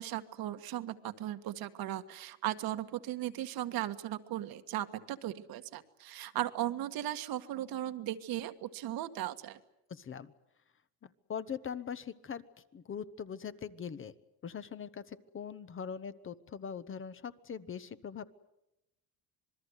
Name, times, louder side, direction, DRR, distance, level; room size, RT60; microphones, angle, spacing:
voice 1, 0.0-9.6, right 13 dB, 60° right, 9 dB, 1.7 m, -37 dB
voice 2, 9.9-10.3 11.0-12.4 12.7-14.1 14.4-18.3, left 7 dB, 30° left, 13 dB, 1.1 m, -41 dB
26.5 x 20.5 x 8.1 m, 0.89 s
cardioid pair, 115°, 40 cm